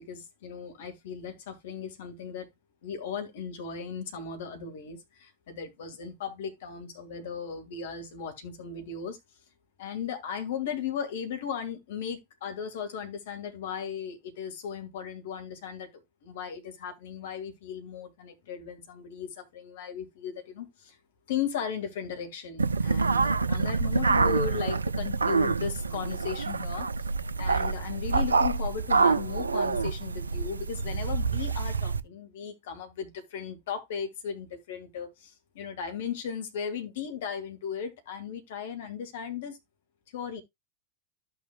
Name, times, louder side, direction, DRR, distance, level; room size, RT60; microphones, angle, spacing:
voice 1, 0.0-2.5 2.8-9.2 9.8-21.0 21.3-26.9 27.4-39.6 40.1-40.4, left 7 dB, 55° left, 1.8 m, -36 dB
sound 1, 22.6-32.0, right 4 dB, 75° right, 0.4 m, -27 dB
13.5 x 6.1 x 2.2 m
figure-of-eight pair, 90°, 0 cm